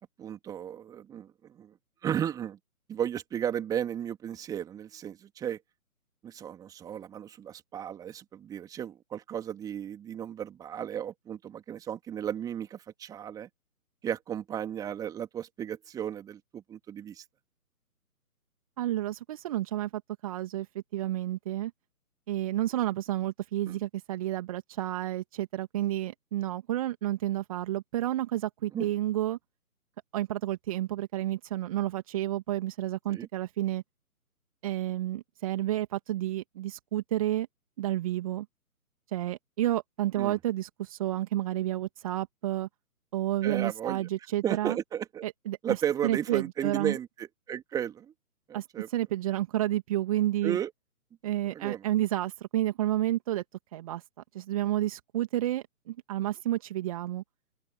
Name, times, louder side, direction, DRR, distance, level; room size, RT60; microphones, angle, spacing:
voice 1, 0.2-1.7 2.0-2.6 2.9-5.6 6.2-13.5 14.0-17.2 23.7-23.8 28.7-28.9 33.1-33.3 40.2-40.4 43.4-44.1 44.4-45.2 45.6-48.1 48.5-48.9 50.4-50.7 51.5-51.8, right 9 dB, 10° right, 3.2 m, -34 dB
voice 2, 18.8-19.9 20.2-21.7 22.3-29.4 30.1-33.8 34.6-37.5 37.8-38.5 39.1-42.7 43.1-44.8 45.2-45.8 46.0-47.0 48.5-50.6 51.2-53.4 53.7-54.0 54.3-57.2, right 14 dB, 25° right, 2.6 m, -30 dB
open air
figure-of-eight pair, 140°, 44 cm